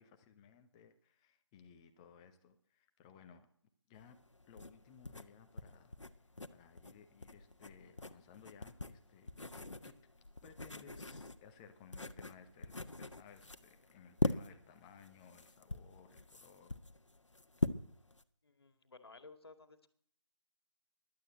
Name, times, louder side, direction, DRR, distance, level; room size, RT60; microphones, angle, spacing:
voice 1, 0.0-3.5 3.9-4.2 4.5-5.9 6.5-9.3 9.5-9.9 10.4-16.8, left 7 dB, 10° left, 7 dB, 0.9 m, -59 dB
sound 1, 4.0-18.2, left 2 dB, 80° left, 1.3 m, -42 dB
voice 2, 18.4-19.9, left 3 dB, 55° left, 9 dB, 2.2 m, -56 dB
16.0 x 11.5 x 8.0 m, 0.63 s
figure-of-eight pair, 155°, 15 cm